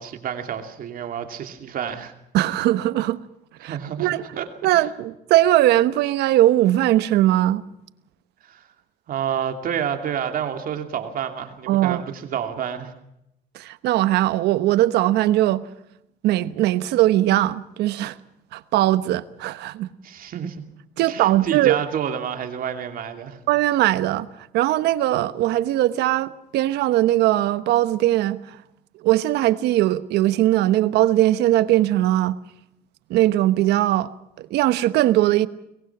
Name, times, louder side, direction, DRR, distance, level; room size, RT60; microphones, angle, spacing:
voice 1, 0.0-2.1 3.6-4.5 4.7-4.9 8.4-8.6 9.1-12.9 20.0-20.6 21.0-23.4, right 8 dB, 55° right, 2.7 m, -29 dB
voice 2, 2.3-3.2 3.6-4.2 4.6-7.6 11.7-12.0 13.5-15.6 16.2-18.2 18.5-19.9 21.0-21.8 23.5-24.3 24.5-28.6 29.0-32.4 33.1-34.1 34.4-35.5, right 14 dB, 85° right, 1.1 m, -20 dB
23.0 x 21.0 x 6.1 m
cardioid pair, 110°, 17 cm